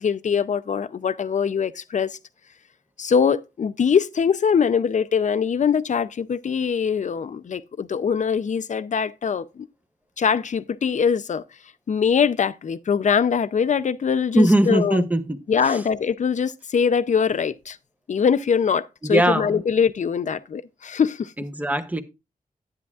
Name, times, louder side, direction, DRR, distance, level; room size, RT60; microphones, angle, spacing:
voice 1, 0.0-2.2 3.0-9.7 10.2-11.4 11.9-15.0 15.5-17.8 18.1-21.3, left 6 dB, 60° left, 0.5 m, -22 dB
voice 2, 14.3-15.4 15.6-15.8 19.0-19.6 21.4-22.0, right 1 dB, 10° right, 0.9 m, -20 dB
10.5 x 9.6 x 2.4 m
wide cardioid pair, 115°, 14 cm